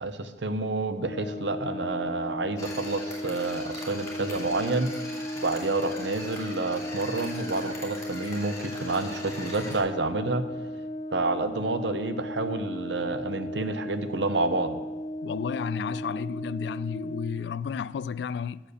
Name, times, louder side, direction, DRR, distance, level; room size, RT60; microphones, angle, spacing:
voice 1, 0.0-10.4 11.1-14.8, right 3 dB, 85° right, 0.8 m, -29 dB
Brass instrument, 1.0-17.4, equal, 45° left, 0.7 m, -36 dB
sound 1, 2.6-9.8, left 2 dB, 20° left, 2.8 m, -41 dB
voice 2, 15.2-18.6, left 6 dB, 70° left, 0.3 m, -32 dB
9.9 x 7.3 x 6.7 m
head